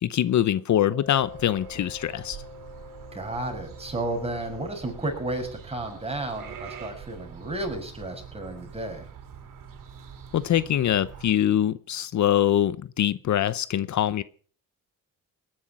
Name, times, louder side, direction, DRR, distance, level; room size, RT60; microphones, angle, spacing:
voice 1, 0.0-2.4 10.3-14.2, left 11 dB, 60° left, 16 dB, 0.8 m, -23 dB
Mallet percussion, 0.9-7.3, left 4 dB, 30° left, 7.1 m, -48 dB
sound 1, 1.2-11.3, right 7 dB, 75° right, 3.8 m, -44 dB
voice 2, 3.1-9.1, right 2 dB, 20° right, 3 dB, 6.7 m, -32 dB
18.5 x 11.0 x 5.9 m, 0.43 s
cardioid pair, 90°, 32 cm